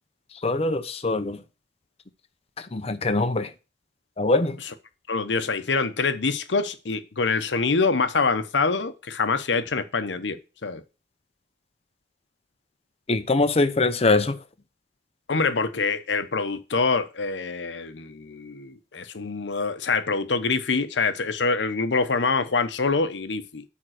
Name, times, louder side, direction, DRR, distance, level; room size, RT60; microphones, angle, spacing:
voice 1, 0.4-1.4 2.6-3.5 4.2-4.6 13.1-14.4, left 3 dB, 35° left, 0.7 m, -23 dB
voice 2, 5.1-10.8 15.3-23.6, left 4 dB, 85° left, 0.8 m, -25 dB
8.9 x 3.7 x 6.3 m
head